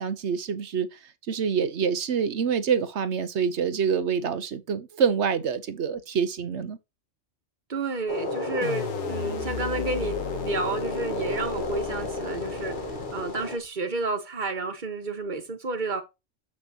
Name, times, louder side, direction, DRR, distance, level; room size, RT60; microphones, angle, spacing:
voice 1, 0.0-6.8, right 6 dB, 65° right, 1.1 m, -26 dB
voice 2, 7.7-12.7 13.1-16.0, right 3 dB, 40° right, 1.5 m, -31 dB
sound 1, 8.1-13.6, left 2 dB, 40° left, 1.5 m, -32 dB
sound 2, 8.6-13.7, left 8 dB, 85° left, 1.4 m, -37 dB
7.8 x 6.2 x 2.8 m
omnidirectional pair, 1.3 m